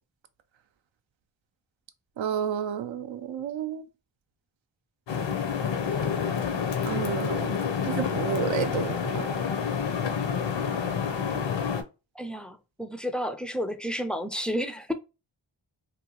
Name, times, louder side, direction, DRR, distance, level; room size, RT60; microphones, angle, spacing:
voice 1, 2.2-3.8 6.8-9.3, right 8 dB, 75° right, 0.5 m, -31 dB
sound 1, 5.1-11.8, left 7 dB, 70° left, 0.6 m, -28 dB
voice 2, 12.2-14.9, equal, ahead, 0.3 m, -31 dB
2.8 x 2.2 x 2.8 m
wide cardioid pair, 50°, 46 cm